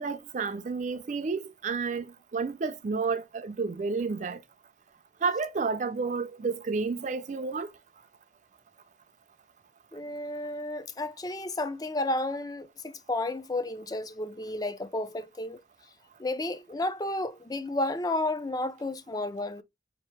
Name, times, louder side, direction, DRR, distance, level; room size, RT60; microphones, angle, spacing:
voice 1, 0.0-4.4 5.2-7.7, right 4 dB, 40° right, 0.4 m, -31 dB
voice 2, 9.9-15.6 16.2-19.6, left 2 dB, 20° left, 0.4 m, -32 dB
5.2 x 2.9 x 3.2 m
head